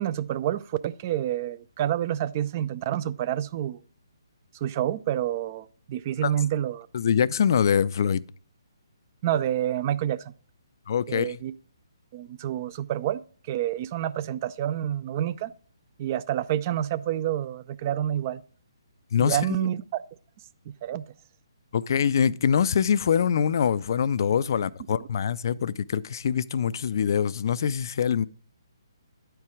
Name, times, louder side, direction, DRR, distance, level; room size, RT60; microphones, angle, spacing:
voice 1, 0.0-3.8 4.6-6.9 9.2-10.3 11.1-11.5 12.1-13.2 13.5-15.5 16.0-18.4 19.2-20.0 20.7-21.0, right 11 dB, 35° right, 0.4 m, -28 dB
voice 2, 6.9-8.2 10.9-11.4 19.1-19.7 21.7-28.3, left 7 dB, 50° left, 0.3 m, -24 dB
9.6 x 4.6 x 4.8 m
figure-of-eight pair, 140°, 3 cm